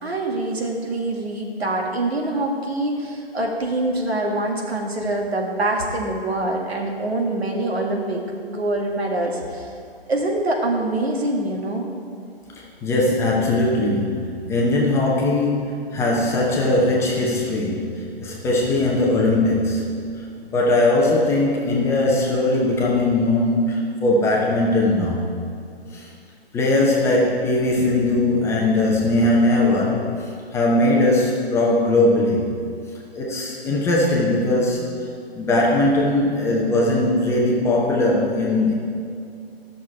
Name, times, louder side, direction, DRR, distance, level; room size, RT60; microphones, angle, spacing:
voice 1, 0.0-9.7 10.1-11.9, right 2 dB, 80° right, 0 dB, 2.0 m, -25 dB
voice 2, 12.8-20.0 20.5-25.2 25.9-26.0 26.5-30.1 30.5-32.6 33.1-34.8 35.3-38.7, left 2 dB, 10° left, -3 dB, 0.7 m, -20 dB
12.5 x 6.4 x 4.6 m, 2.4 s
figure-of-eight pair, 140°, 31 cm